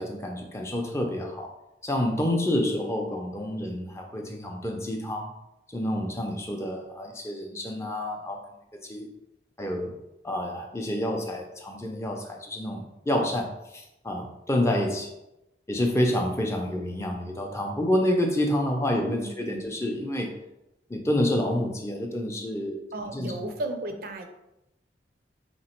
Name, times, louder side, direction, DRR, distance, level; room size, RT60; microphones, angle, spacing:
voice 1, 0.0-1.5 1.8-5.3 5.7-8.4 8.8-9.1 9.6-9.9 10.2-15.1 15.7-20.4 20.9-23.5, left 1 dB, 15° left, 2 dB, 0.5 m, -28 dB
voice 2, 19.0-19.7 22.9-24.3, right 1 dB, 55° right, 5 dB, 0.5 m, -34 dB
3.4 x 3.0 x 4.3 m, 0.90 s
head